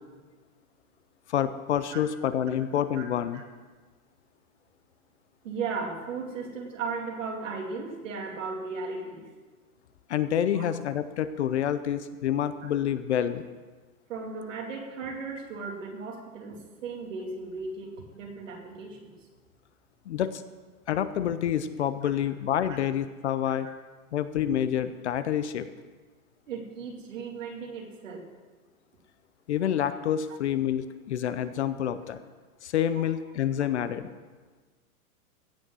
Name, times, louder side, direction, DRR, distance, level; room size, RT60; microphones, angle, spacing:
voice 1, 1.3-3.4 10.1-13.4 20.1-20.4 20.9-23.7 24.1-25.7 29.5-32.2 32.6-34.1, left 10 dB, 50° left, 13 dB, 0.6 m, -28 dB
voice 2, 5.4-9.2 10.5-10.7 14.1-19.1 22.0-22.1 22.7-22.8 23.5-23.6 26.5-28.2 33.0-33.1, right 4 dB, 60° right, 1 dB, 2.7 m, -36 dB
16.0 x 6.4 x 6.1 m, 1.3 s
supercardioid pair, 175°, 44 cm